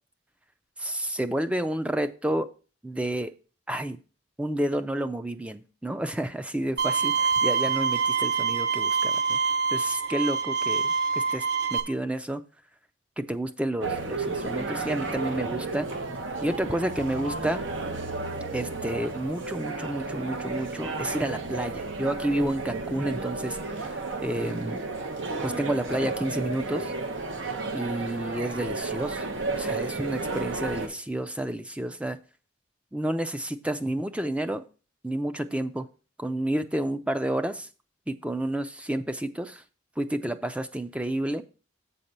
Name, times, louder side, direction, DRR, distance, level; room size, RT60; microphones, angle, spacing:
voice 1, 0.8-2.5 2.8-3.3 3.7-4.0 4.4-9.4 9.7-11.4 11.7-12.4 13.2-15.9 16.4-17.6 18.5-24.8 25.4-26.9 27.7-29.2 29.5-32.2 32.9-34.6 35.0-35.9 36.2-37.7 38.1-39.6 40.0-41.4, right 1 dB, 5° right, 10 dB, 0.4 m, -30 dB
Bowed string instrument, 6.8-11.8, right 5 dB, 60° right, 1.0 m, -25 dB
sound 1, 13.8-30.9, right 3 dB, 80° right, 1.1 m, -33 dB
7.9 x 4.2 x 6.6 m, 0.37 s
head